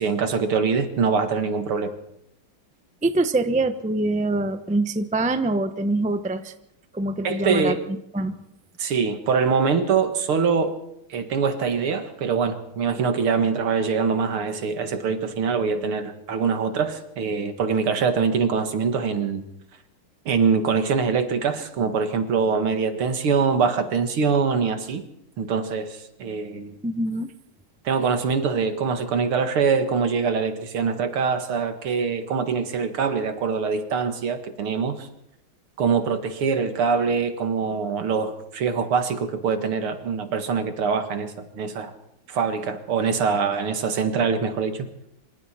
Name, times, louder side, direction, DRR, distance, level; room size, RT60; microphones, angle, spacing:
voice 1, 0.0-1.9 7.2-7.8 8.8-10.8 11.1-19.5 20.3-25.0 25.4-26.8 27.8-35.1 35.8-41.9 42.3-44.9, right 5 dB, 85° right, 7 dB, 2.6 m, -24 dB
voice 2, 3.0-6.5 6.9-7.8 8.1-8.4 26.8-27.3, right 2 dB, 10° right, 9 dB, 0.5 m, -24 dB
25.5 x 25.0 x 4.4 m, 0.79 s
omnidirectional pair, 2.3 m